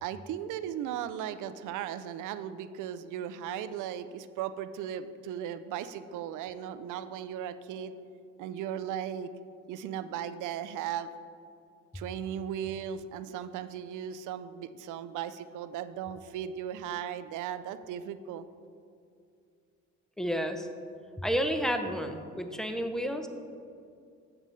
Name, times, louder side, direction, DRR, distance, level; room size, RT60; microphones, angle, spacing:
voice 1, 0.0-7.9 8.4-9.3 9.7-11.1 11.9-18.5, right 9 dB, 85° right, 13 dB, 0.5 m, -37 dB
voice 2, 20.2-20.7 21.2-23.3, equal, ahead, 6 dB, 0.6 m, -31 dB
7.9 x 7.3 x 3.8 m, 2.4 s
cardioid pair, 90°, 30 cm